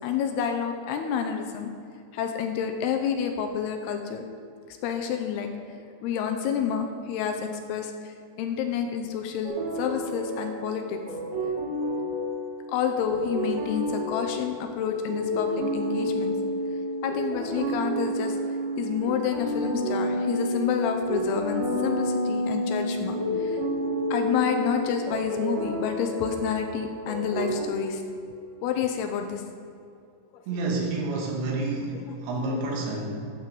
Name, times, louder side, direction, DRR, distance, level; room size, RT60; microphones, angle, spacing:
voice 1, 0.0-1.7 2.1-4.2 4.7-5.5 6.0-11.0 12.7-16.3 17.0-18.4 18.8-23.6 24.1-28.0 28.6-29.4 31.9-32.1, left 7 dB, 80° left, 5 dB, 2.6 m, -29 dB
sound 1, 9.4-27.7, equal, 35° right, 2.1 m, -30 dB
voice 2, 30.5-33.2, right 2 dB, 85° right, -1 dB, 4.0 m, -29 dB
12.0 x 7.4 x 5.2 m, 2.4 s
omnidirectional pair, 5.0 m